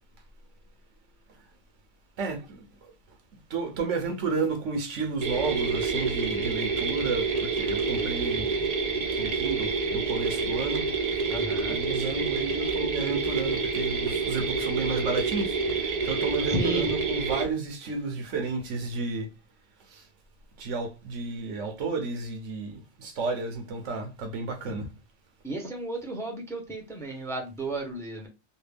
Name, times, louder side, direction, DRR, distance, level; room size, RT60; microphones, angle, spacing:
voice 1, 2.2-2.9 3.5-8.6 9.2-10.9 11.6-19.3 19.9-20.1 20.6-24.9, right 4 dB, 85° right, 1.1 m, -32 dB
sound 1, 5.2-17.4, right 4 dB, 45° right, 0.5 m, -28 dB
voice 2, 11.3-11.8 16.5-16.9 25.4-28.3, right 1 dB, 5° left, 0.6 m, -33 dB
3.2 x 2.3 x 3.3 m
omnidirectional pair, 1.2 m